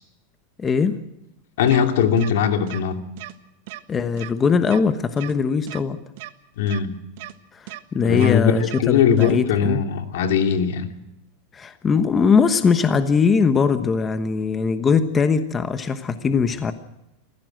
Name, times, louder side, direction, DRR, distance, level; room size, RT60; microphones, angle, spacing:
voice 1, 0.6-1.0 3.9-6.0 7.5-9.8 11.5-16.7, left 5 dB, 20° left, 10 dB, 1.2 m, -20 dB
voice 2, 1.6-3.0 6.6-7.0 8.0-8.5 8.8-10.9, left 8 dB, 75° left, 6 dB, 2.7 m, -20 dB
sound 1, 1.7-1.8 2.2-2.3 2.7-2.8 3.2-3.3 3.7-3.8 4.2-4.3 4.7-4.8 5.2-5.3 5.7-5.8 6.2-6.3 6.7-6.8 7.2-7.3 7.7-7.8 8.2-8.3 8.7-8.8 9.2-9.3, right 17 dB, 60° right, 1.4 m, -36 dB
24.0 x 16.0 x 7.8 m, 0.90 s
supercardioid pair, 145°, 0 cm